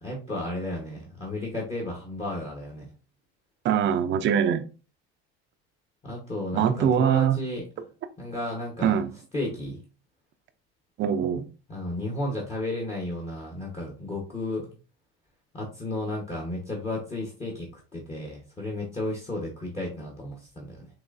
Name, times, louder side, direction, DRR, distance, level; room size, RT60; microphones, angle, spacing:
voice 1, 0.0-2.9 6.0-7.6 8.2-9.0 9.3-9.8 11.7-14.7 15.5-20.9, left 1 dB, 20° left, 1.3 m, -33 dB
voice 2, 3.6-4.7 6.5-7.4 8.8-9.1 11.0-11.5, right 8 dB, 40° right, 0.6 m, -23 dB
6.1 x 3.1 x 2.6 m
cardioid pair, 135°, 29 cm